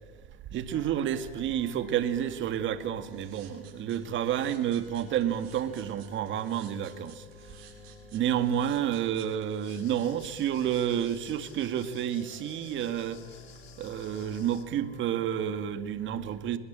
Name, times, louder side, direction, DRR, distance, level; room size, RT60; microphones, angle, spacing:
voice 1, 0.5-7.2 8.1-13.2 13.8-16.6, right 10 dB, 40° right, 2.1 m, -30 dB
sound 1, 0.7-15.8, left 5 dB, 25° left, 3.7 m, -53 dB
sound 2, 3.1-11.5, right 10 dB, 80° right, 7.5 m, -55 dB
sound 3, 9.6-14.6, left 10 dB, 80° left, 3.0 m, -55 dB
25.0 x 21.0 x 9.0 m
hypercardioid pair, 110°, 31 cm